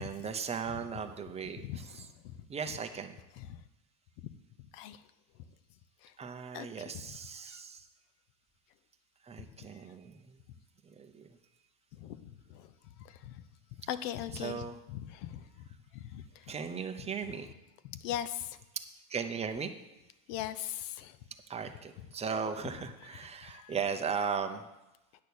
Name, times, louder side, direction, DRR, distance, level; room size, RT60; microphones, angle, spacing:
voice 1, 0.0-2.1 2.5-3.2 6.2-7.9 9.2-10.4 10.8-11.4 14.3-14.8 16.5-17.5 18.7-18.8 19.1-19.7 21.5-24.7, right 6 dB, 15° right, 6 dB, 0.6 m, -37 dB
voice 2, 1.6-2.4 3.4-3.6 4.2-4.3 4.6-5.0 6.0-6.1 6.5-6.7 7.4-7.6 11.9-13.4 13.9-15.7 15.9-16.5 17.3-17.4 17.8-18.6 20.3-21.2 23.4-23.8, left 11 dB, 85° left, 14 dB, 0.9 m, -41 dB
9.5 x 6.3 x 8.5 m, 0.97 s
cardioid pair, 150°, 46 cm